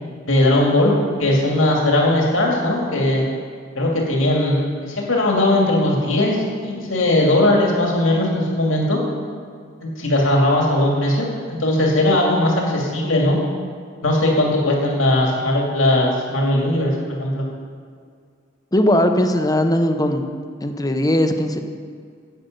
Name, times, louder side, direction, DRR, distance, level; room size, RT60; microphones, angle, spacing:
voice 1, 0.2-0.9 1.2-3.2 3.8-9.0 9.8-13.4 14.0-17.4, left 1 dB, 75° left, -1 dB, 2.4 m, -19 dB
voice 2, 18.7-20.2 20.6-21.6, left 1 dB, 20° left, 6 dB, 0.8 m, -18 dB
10.5 x 8.1 x 7.9 m, 2.1 s
head